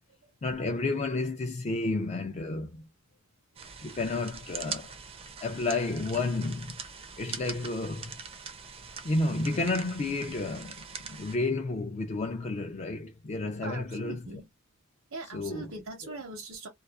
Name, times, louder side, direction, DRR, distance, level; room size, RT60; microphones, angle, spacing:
voice 1, 0.4-2.8 3.8-4.9 5.4-6.8 7.2-8.1 9.0-10.8 11.1-14.2 15.3-15.6, left 2 dB, 35° left, 0.4 m, -31 dB
sound 1, 3.6-11.4, right 6 dB, 30° right, 0.4 m, -42 dB
voice 2, 13.6-14.5 15.1-16.7, right 3 dB, 80° right, 0.7 m, -41 dB
2.4 x 2.3 x 2.3 m
head